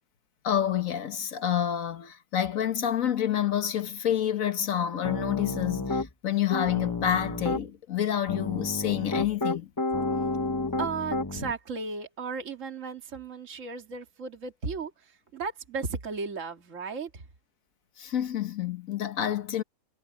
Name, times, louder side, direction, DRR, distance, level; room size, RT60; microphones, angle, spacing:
voice 1, 0.4-9.7 18.0-19.6, left 10 dB, 55° left, 1.5 m, -28 dB
Piano, 5.0-6.1 6.5-7.6 8.3-11.5, left 2 dB, 20° left, 0.5 m, -30 dB
voice 2, 10.8-17.2, right 4 dB, 50° right, 2.4 m, -35 dB
omnidirectional pair, 1.8 m